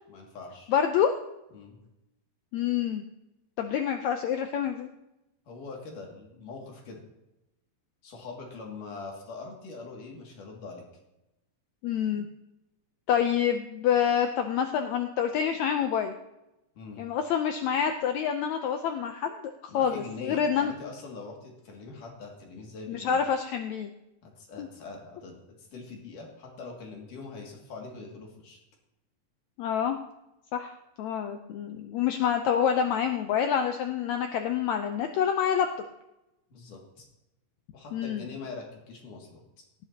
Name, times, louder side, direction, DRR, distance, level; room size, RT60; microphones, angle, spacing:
voice 1, 0.1-0.7 1.5-1.8 5.5-7.0 8.0-10.8 16.8-17.0 19.7-23.2 24.2-28.6 36.5-37.1 37.7-39.4, left 3 dB, 65° left, 0 dB, 3.7 m, -43 dB
voice 2, 0.7-1.1 2.5-3.0 3.6-4.9 11.8-12.3 13.1-16.1 17.0-20.7 22.9-23.9 24.6-24.7 29.6-30.0 30.5-35.7 37.9-38.2, left 8 dB, 85° left, 6 dB, 1.6 m, -27 dB
18.5 x 11.0 x 2.8 m, 0.92 s
omnidirectional pair, 4.1 m